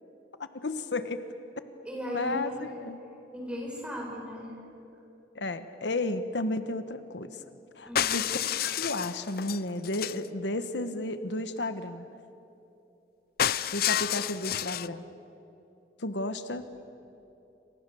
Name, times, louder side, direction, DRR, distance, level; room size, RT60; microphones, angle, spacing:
voice 1, 0.4-1.2 2.1-3.0 5.3-7.4 7.8-8.4 8.8-12.1 13.7-15.0 16.0-16.8, left 2 dB, 85° left, 10 dB, 1.2 m, -33 dB
voice 2, 1.9-2.6 3.3-4.6 7.9-8.2, left 1 dB, 5° right, -2 dB, 7.3 m, -36 dB
sound 1, 8.0-10.3 13.4-14.9, left 10 dB, 55° left, 0.6 m, -29 dB
28.5 x 26.5 x 7.0 m, 2.9 s
head